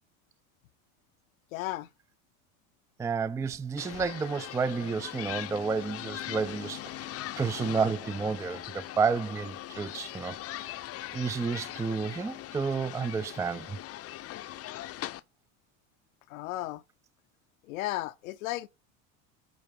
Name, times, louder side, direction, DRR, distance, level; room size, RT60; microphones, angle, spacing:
voice 1, 1.5-1.9 16.3-16.8 17.7-18.7, left 17 dB, 80° left, 0.8 m, -34 dB
voice 2, 3.0-7.1 7.4-10.7 11.1-13.8, right 5 dB, 10° right, 0.4 m, -31 dB
sound 1, 3.8-15.2, left 14 dB, 35° left, 0.7 m, -40 dB
9.1 x 4.4 x 5.3 m
supercardioid pair, 105°, 40 cm